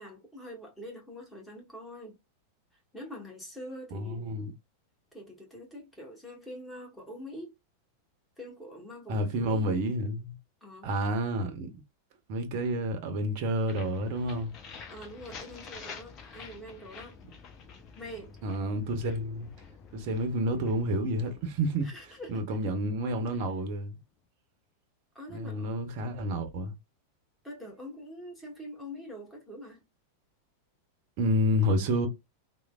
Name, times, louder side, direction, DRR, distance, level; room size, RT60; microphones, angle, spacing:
voice 1, 0.0-2.1 2.9-4.4 5.1-7.5 8.4-9.7 10.6-10.9 14.9-17.2 17.9-18.3 21.8-22.4 23.4-23.5 25.1-25.7 27.4-29.8, equal, 5° left, 1.2 m, -44 dB
voice 2, 3.9-4.5 9.1-10.3 10.8-11.7 12.3-14.5 18.4-19.5 19.9-21.9 22.3-24.0 25.3-26.7 31.2-32.1, equal, 45° right, 0.6 m, -29 dB
sound 1, 13.7-23.5, left 5 dB, 35° left, 0.6 m, -49 dB
3.1 x 2.0 x 2.2 m
figure-of-eight pair, 90°, 0 cm